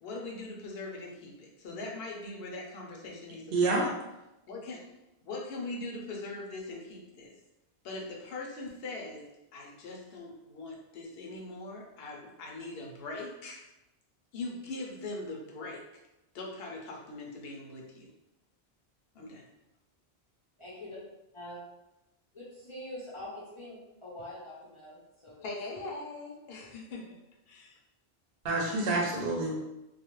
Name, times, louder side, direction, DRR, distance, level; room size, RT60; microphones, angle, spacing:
voice 1, 0.0-3.9 4.5-4.8 5.3-7.3 7.8-9.2 9.5-13.6 14.3-15.8 16.3-18.1 19.1-19.4 25.4-27.2 27.5-27.8, left 2 dB, 75° left, -1 dB, 0.8 m, -41 dB
voice 2, 3.5-3.9 28.4-29.5, right 3 dB, 70° right, 0 dB, 0.8 m, -27 dB
voice 3, 22.3-26.0, left 1 dB, 40° left, -7 dB, 0.4 m, -45 dB
2.4 x 2.0 x 2.9 m, 0.94 s
omnidirectional pair, 1.0 m